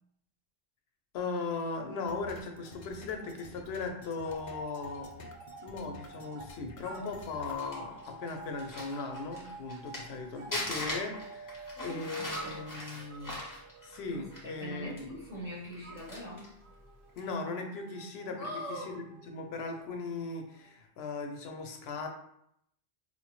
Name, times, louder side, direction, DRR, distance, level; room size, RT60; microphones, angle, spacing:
voice 1, 1.1-5.3 5.6-13.4 13.8-15.1 17.1-22.1, left 4 dB, 75° left, 4 dB, 0.9 m, -38 dB
sound 1, 1.8-3.4 3.7-20.8, right 3 dB, 70° right, 0.9 m, -50 dB
sound 2, 2.1-7.8, left 3 dB, 60° left, 0.3 m, -51 dB
Crumpling crinkling, 7.2-10.2 10.5-14.6 15.0-15.1 15.6-16.5 17.1-17.3, left 1 dB, 20° left, 0.6 m, -40 dB
voice 2, 11.7-12.7 14.1-16.6 18.4-18.9, equal, 35° right, -7 dB, 0.8 m, -42 dB
4.4 x 2.1 x 3.0 m, 0.74 s
omnidirectional pair, 1.1 m